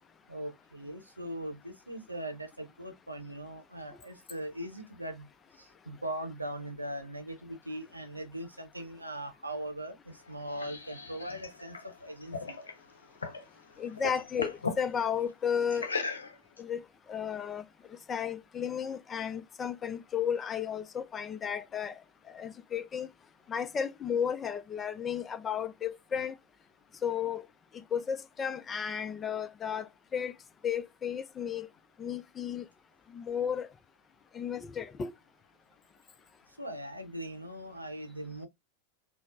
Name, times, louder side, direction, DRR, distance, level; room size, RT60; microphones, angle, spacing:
voice 1, 0.3-5.3 5.6-12.6 36.6-38.5, right 1 dB, 85° right, 0.7 m, -40 dB
sound 1, 10.1-13.5 13.8-14.8 15.7-16.6, left 4 dB, 75° left, 0.6 m, -38 dB
voice 2, 13.8-15.9 16.6-16.8 17.1-17.6 18.1-22.0 22.3-23.1 23.5-26.3 27.0-27.4 27.9-30.3 30.6-31.7 32.0-32.7 33.1-33.7 34.3-35.1, left 8 dB, 20° left, 0.4 m, -33 dB
4.0 x 2.0 x 2.3 m
figure-of-eight pair, 90°, 0 cm